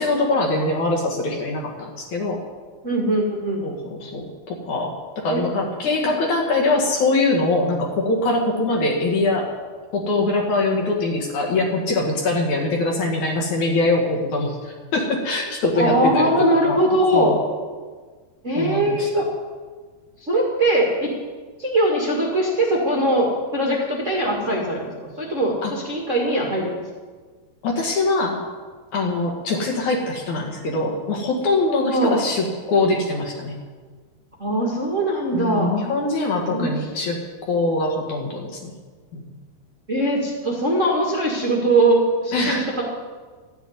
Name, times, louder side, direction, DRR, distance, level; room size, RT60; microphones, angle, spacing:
voice 1, 0.0-2.4 3.6-9.5 9.9-16.7 17.1-17.4 18.6-19.1 25.6-25.7 27.6-28.4 28.9-33.6 35.3-37.2 37.4-38.7 39.1-39.3 42.3-42.8, left 2 dB, 50° left, 0 dB, 2.7 m, -23 dB
voice 2, 2.8-3.7 5.3-5.4 10.7-10.8 15.7-17.4 18.4-19.2 20.2-21.1 21.6-23.3 23.5-26.7 31.9-32.2 34.4-35.7 36.5-36.7 39.9-42.8, right 1 dB, 40° right, -3 dB, 1.1 m, -21 dB
14.0 x 8.2 x 9.6 m, 1.5 s
omnidirectional pair, 5.1 m